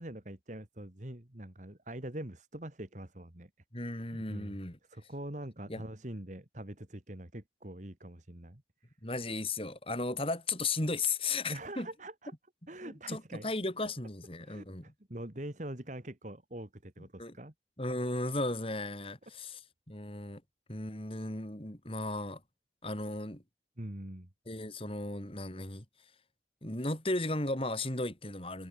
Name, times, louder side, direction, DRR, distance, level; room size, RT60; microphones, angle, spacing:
voice 1, 0.0-3.5 3.8-4.5 4.9-8.6 11.5-12.3 12.7-13.5 14.4-17.5 23.8-24.3, right 1 dB, 40° right, 2.2 m, -44 dB
voice 2, 3.7-4.8 5.7-5.8 9.0-11.9 12.8-14.9 17.2-17.4 17.8-19.6 19.9-20.4 20.7-22.4 22.8-23.4 24.5-25.8 26.6-28.7, left 2 dB, 30° left, 4.3 m, -35 dB
head